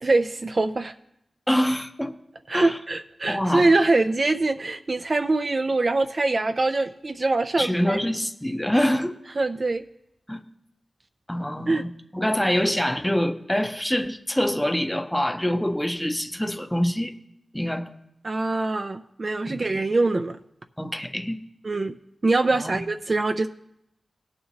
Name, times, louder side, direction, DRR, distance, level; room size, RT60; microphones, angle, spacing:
voice 1, 0.0-0.9 2.5-8.0 9.4-9.8 11.7-11.8 18.2-20.4 21.6-22.0 22.2-23.5, right 2 dB, 40° right, 8 dB, 0.4 m, -23 dB
voice 2, 1.5-2.2 2.5-2.8 3.3-3.7 7.6-9.2 10.3-10.4 11.3-11.9 12.1-17.1 17.5-17.9 19.5-19.6 20.8-21.4 22.6-22.8, equal, 5° left, 8 dB, 0.6 m, -25 dB
19.0 x 6.5 x 3.0 m, 0.81 s
wide cardioid pair, 130°, 0 cm